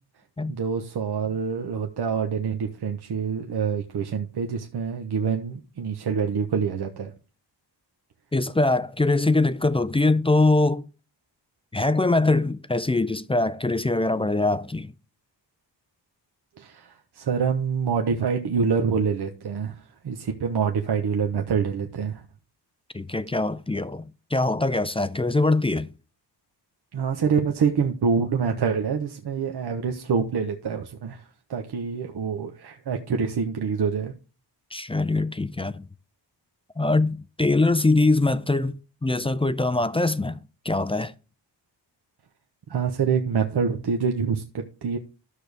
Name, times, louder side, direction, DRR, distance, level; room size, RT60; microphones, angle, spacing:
voice 1, 0.5-7.1 16.6-22.2 26.9-34.1 42.7-45.0, right 6 dB, 65° right, 1.1 m, -26 dB
voice 2, 8.3-10.8 11.7-14.9 22.9-25.9 34.7-35.9 36.8-38.7 39.0-40.4 40.6-41.1, left 2 dB, 15° left, 0.4 m, -23 dB
13.0 x 6.4 x 3.4 m
cardioid pair, 85°, 43 cm